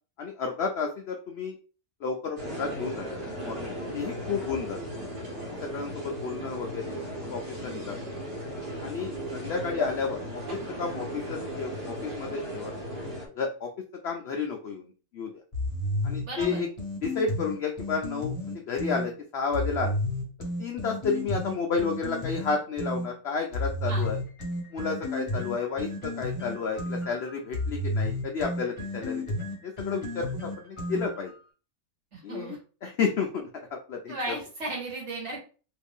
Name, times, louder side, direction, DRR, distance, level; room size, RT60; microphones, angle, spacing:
voice 1, 0.2-1.6 2.0-3.1 3.4-4.8 5.6-8.2 8.8-12.7 13.4-13.7 14.0-14.8 15.1-15.3 16.0-16.7 17.0-18.3 18.7-20.0 20.6-24.2 24.7-29.2 29.6-31.3 32.2-32.6 32.8-34.1, left 5 dB, 70° left, 3 dB, 0.6 m, -31 dB
sound 1, 2.4-13.3, right 1 dB, 70° right, 1.6 m, -36 dB
sound 2, 15.5-19.1 19.5-23.1 23.5-31.3, left 1 dB, 20° left, 1.2 m, -32 dB
voice 2, 16.2-16.6 23.9-24.1 32.1-32.6 34.1-35.4, right 2 dB, 50° right, -2 dB, 1.5 m, -35 dB
3.2 x 2.6 x 3.5 m, 0.37 s
omnidirectional pair, 1.7 m